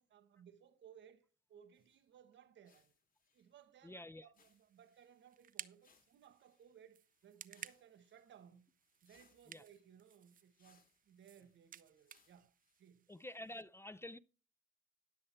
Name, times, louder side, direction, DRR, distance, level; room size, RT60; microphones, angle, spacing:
voice 1, 0.0-2.9 3.3-8.7 9.0-12.5 12.8-13.1, right 8 dB, 65° right, 1.3 m, -62 dB
sound 1, 1.7-2.1 2.3-2.4 2.6-4.0 4.3-5.5 5.8-12.9, left 5 dB, 45° left, 2.8 m, -76 dB
voice 2, 3.8-4.3 9.5-9.6 13.1-14.2, left 1 dB, 10° left, 0.4 m, -49 dB
sound 2, 4.4-13.6, right 9 dB, 45° right, 0.6 m, -57 dB
11.0 x 7.8 x 4.4 m
cardioid pair, 90°, 20 cm